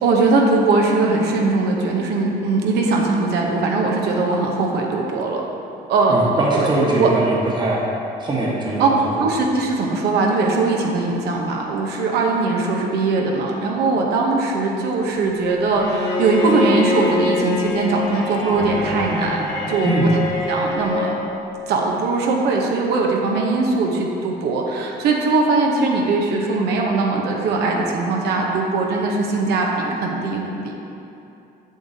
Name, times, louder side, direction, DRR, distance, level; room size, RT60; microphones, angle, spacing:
voice 1, 0.0-5.4 5.9-6.7 7.0-7.1 8.8-8.9 9.2-19.9 20.5-21.1 21.7-30.7, right 3 dB, 75° right, 0 dB, 0.9 m, -20 dB
voice 2, 6.1-7.8 8.2-8.9 19.8-20.1, right 1 dB, 25° right, -4 dB, 1.2 m, -21 dB
Bowed string instrument, 15.7-21.3, left 2 dB, 25° left, 1.4 m, -25 dB
7.5 x 6.3 x 2.8 m, 2.8 s
cardioid pair, 110°, 17 cm